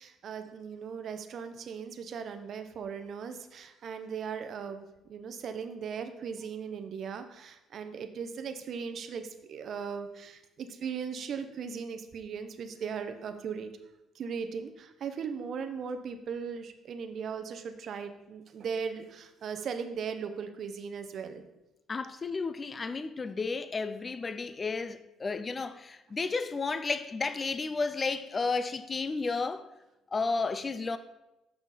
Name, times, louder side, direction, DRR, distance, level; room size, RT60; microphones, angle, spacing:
voice 1, 0.0-13.7 14.1-21.4, right 6 dB, 55° right, 0.7 m, -38 dB
voice 2, 21.9-29.7 30.1-31.0, left 4 dB, 30° left, 0.3 m, -32 dB
6.0 x 5.7 x 3.9 m
cardioid pair, 95°, 0 cm